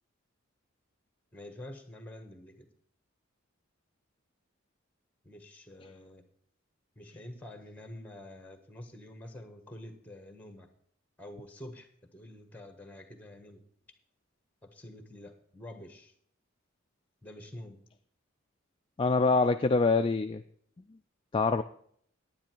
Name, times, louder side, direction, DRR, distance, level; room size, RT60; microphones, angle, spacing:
voice 1, 1.3-2.7 5.2-6.2 6.9-10.7 11.2-11.9 12.1-13.6 14.7-16.1 17.2-17.8, left 1 dB, 5° left, 7 dB, 1.4 m, -47 dB
voice 2, 19.0-20.4 21.3-21.6, left 3 dB, 25° left, 7 dB, 0.3 m, -25 dB
10.0 x 9.5 x 4.5 m, 0.62 s
head